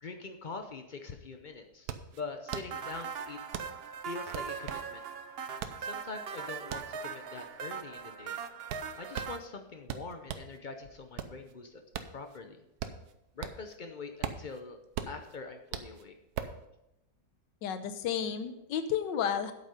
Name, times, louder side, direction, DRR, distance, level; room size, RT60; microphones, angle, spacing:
voice 1, 0.0-3.4 3.8-5.0 5.8-8.4 9.0-11.8 12.1-12.6 13.4-14.8 15.1-16.2, left 4 dB, 60° left, 6 dB, 0.5 m, -44 dB
sound 1, 0.9-1.0 1.3-10.6 11.0-13.8 14.0-16.6, right 8 dB, 70° right, 1.2 m, -41 dB
sound 2, 2.5-9.4, right 6 dB, 90° right, 0.5 m, -40 dB
voice 2, 17.6-19.5, left 8 dB, 80° left, 10 dB, 1.5 m, -32 dB
8.4 x 8.4 x 5.1 m, 0.87 s
omnidirectional pair, 1.9 m